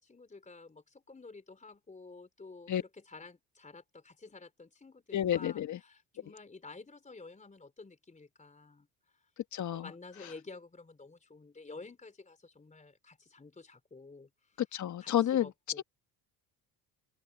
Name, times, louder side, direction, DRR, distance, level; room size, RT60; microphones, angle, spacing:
voice 1, 0.0-9.3 9.7-14.6 15.0-15.8, left 3 dB, 20° left, 4.0 m, -51 dB
voice 2, 5.1-5.8 9.5-9.8 14.7-15.5 15.8-15.9, left 11 dB, 50° left, 1.5 m, -30 dB
open air
supercardioid pair, 85°, 37 cm